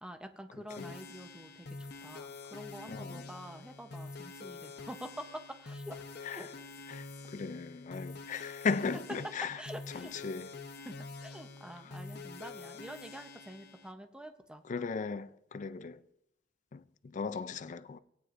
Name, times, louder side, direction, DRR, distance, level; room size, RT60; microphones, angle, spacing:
voice 1, 0.0-6.1 6.4-6.5 9.4-10.1 10.8-10.9 11.2-14.6, equal, 5° right, 0.7 m, -47 dB
sound 1, 0.7-13.9, left 3 dB, 65° left, 0.8 m, -47 dB
voice 2, 2.9-3.3 6.2-6.5 6.9-9.5 9.9-10.5 14.7-16.0 16.7-18.0, left 5 dB, 45° left, 0.4 m, -37 dB
17.5 x 9.3 x 2.5 m
head